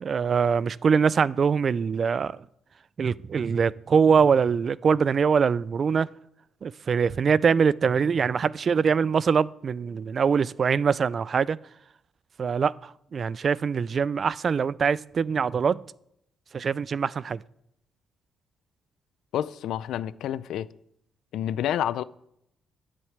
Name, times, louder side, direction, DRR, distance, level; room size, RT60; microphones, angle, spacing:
voice 1, 0.0-2.4 3.0-6.1 6.6-11.6 12.4-15.8 16.5-17.4, right 6 dB, 45° right, 0.4 m, -23 dB
voice 2, 19.3-20.7 21.3-22.0, left 11 dB, 80° left, 0.5 m, -29 dB
9.8 x 7.6 x 8.0 m
cardioid pair, 90°, 0 cm